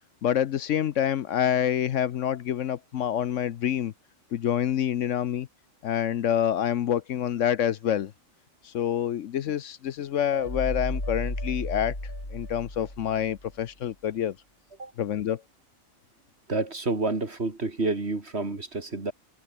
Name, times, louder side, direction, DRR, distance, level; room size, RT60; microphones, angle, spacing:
voice 1, 0.2-3.9 4.3-5.5 5.8-8.1 8.6-11.9 12.3-14.3 15.0-15.4, left 10 dB, 70° left, 1.0 m, -27 dB
sound 1, 10.3-13.5, left 1 dB, 45° left, 8.1 m, -34 dB
voice 2, 16.5-19.1, right 3 dB, 50° right, 3.3 m, -29 dB
omnidirectional pair, 1.4 m